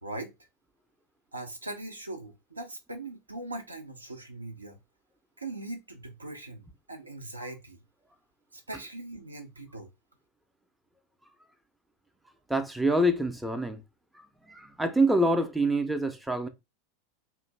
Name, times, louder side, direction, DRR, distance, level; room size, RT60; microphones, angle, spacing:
voice 1, 0.0-0.3 1.3-4.8 5.4-7.8 8.5-9.9, right 2 dB, 85° right, 0.5 m, -40 dB
voice 2, 12.5-13.8 14.5-16.5, right 1 dB, 5° right, 0.5 m, -26 dB
2.5 x 2.0 x 3.2 m
figure-of-eight pair, 85°, 0 cm